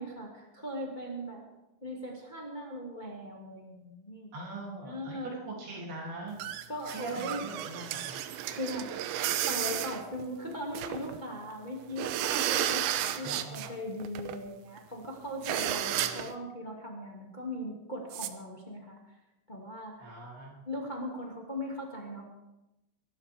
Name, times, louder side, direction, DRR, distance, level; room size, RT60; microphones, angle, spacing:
voice 1, 0.0-1.4 1.8-4.3 4.8-5.3 6.7-7.4 8.5-8.9 9.5-19.0 19.5-20.1 20.6-22.2, equal, 20° left, -2 dB, 1.3 m, -39 dB
voice 2, 4.3-6.4 6.9-8.2 13.2-13.8 15.9-16.3 20.0-20.6, right 2 dB, 60° right, -2 dB, 5.0 m, -42 dB
sound 1, 6.4-11.2 11.5-11.6 11.9-13.7 14.0-14.4 14.8-14.9 15.0-15.1 15.4-16.3 18.1-18.3, right 12 dB, 85° right, 3.0 m, -33 dB
23.5 x 12.0 x 3.6 m, 0.95 s
omnidirectional pair, 5.1 m